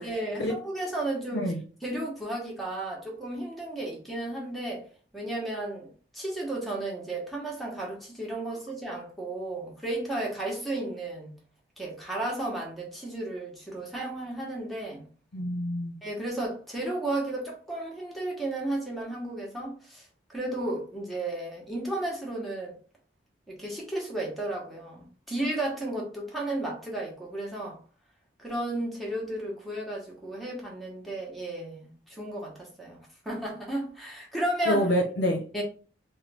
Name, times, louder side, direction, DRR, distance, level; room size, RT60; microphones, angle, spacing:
voice 1, 0.0-1.5 1.8-4.8 5.1-5.9 6.1-11.3 11.8-15.0 16.0-22.7 23.5-27.8 28.4-33.0 33.2-34.9 35.5-35.6, right 1 dB, ahead, 0.9 m, -33 dB
voice 2, 15.3-15.9 34.7-35.4, equal, 65° left, 0.6 m, -26 dB
3.1 x 2.2 x 3.3 m
head